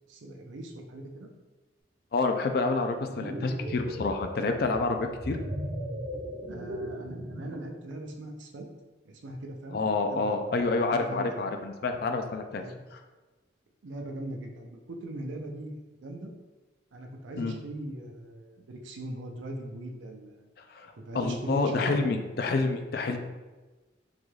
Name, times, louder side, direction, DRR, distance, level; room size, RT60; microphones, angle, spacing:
voice 1, 0.1-1.3 6.5-8.7 9.0-10.5 10.9-11.5 12.6-12.8 13.8-16.3 16.9-20.5 20.9-22.0, right 1 dB, 85° right, 2 dB, 0.5 m, -40 dB
voice 2, 2.1-5.4 9.7-12.6 12.9-13.0 17.4-17.5 20.7-23.2, left 3 dB, 55° left, 5 dB, 0.3 m, -28 dB
sound 1, 3.0-7.7, equal, 40° right, 0.5 m, -37 dB
3.8 x 2.3 x 3.1 m, 1.2 s
head